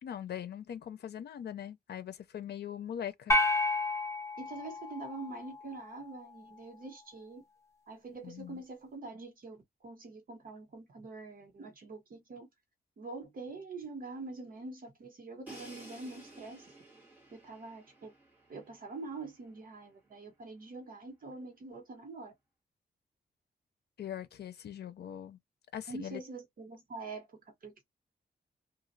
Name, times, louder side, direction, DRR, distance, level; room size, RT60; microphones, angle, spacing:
voice 1, 0.0-3.4 8.2-8.6 24.0-25.4 25.7-26.2, left 9 dB, 85° left, 0.5 m, -41 dB
sound 1, 3.3-5.8, left 2 dB, 15° left, 0.8 m, -31 dB
voice 2, 4.4-7.4 7.9-12.5 13.0-16.7 17.3-18.1 18.5-22.3 25.9-27.8, right 3 dB, 60° right, 1.1 m, -45 dB
Crash cymbal, 15.5-19.3, right 2 dB, 10° right, 1.9 m, -53 dB
3.0 x 2.4 x 2.6 m
wide cardioid pair, 160°, 17 cm